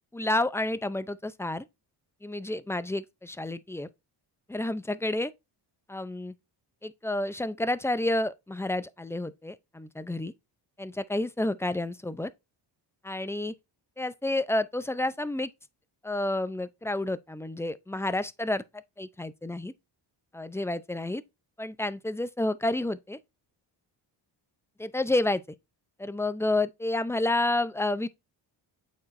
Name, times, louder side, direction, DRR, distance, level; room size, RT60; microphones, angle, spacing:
voice 1, 0.1-1.6 2.2-3.9 4.5-5.3 5.9-6.3 6.8-10.3 10.8-12.3 13.0-13.5 14.0-15.5 16.0-18.6 19.0-19.7 20.3-21.2 21.6-23.2 24.8-25.4 26.0-28.1, left 2 dB, 5° left, 0.5 m, -30 dB
8.3 x 4.7 x 2.6 m
cardioid pair, 85°, 45 cm